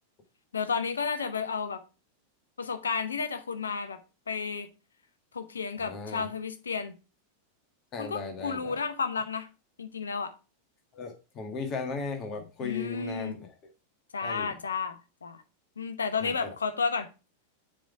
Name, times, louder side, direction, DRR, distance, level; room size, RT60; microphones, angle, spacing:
voice 1, 0.5-1.8 2.6-4.0 4.3-4.7 5.3-6.9 8.0-9.5 9.8-10.3 12.6-13.4 14.1-15.4 15.8-17.1, left 5 dB, 70° left, 0.8 m, -32 dB
voice 2, 5.8-6.3 7.9-8.7 10.9-13.5 14.2-14.5 16.2-16.5, left 4 dB, 30° left, 1.6 m, -37 dB
7.3 x 3.6 x 4.5 m
figure-of-eight pair, 90°, 0 cm